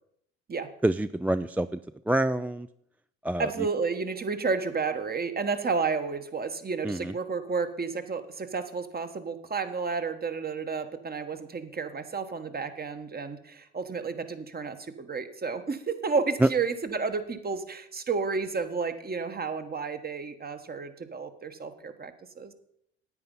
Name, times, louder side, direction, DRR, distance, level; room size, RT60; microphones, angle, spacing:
voice 1, 0.8-1.8 2.1-2.7 3.2-3.5 6.8-7.1 16.4-16.5, right 1 dB, 5° right, 12 dB, 0.3 m, -26 dB
voice 2, 3.4-22.5, right 4 dB, 30° right, 9 dB, 1.4 m, -31 dB
9.7 x 8.9 x 5.5 m, 0.73 s
supercardioid pair, 65°, 30 cm